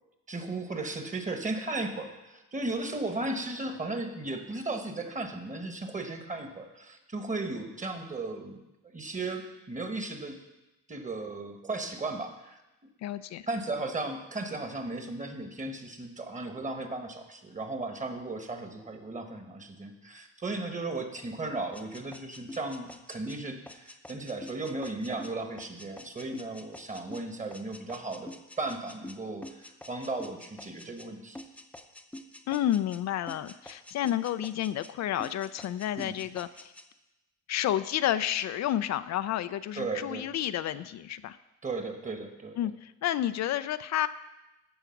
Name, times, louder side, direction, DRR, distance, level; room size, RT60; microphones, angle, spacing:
voice 1, 0.3-8.6 8.9-10.4 10.9-12.6 13.5-31.4 36.0-36.2 39.8-40.3 41.6-42.6, right 2 dB, 25° right, 6 dB, 1.4 m, -36 dB
voice 2, 13.0-13.5 32.5-36.7 37.5-41.4 42.6-44.1, left 12 dB, 65° left, 12 dB, 0.4 m, -30 dB
sound 1, 21.7-31.1 31.3-33.0 33.3-34.9 35.2-36.9, left 1 dB, 5° left, 0.7 m, -47 dB
14.0 x 4.8 x 5.8 m, 0.98 s
cardioid pair, 90°, 30 cm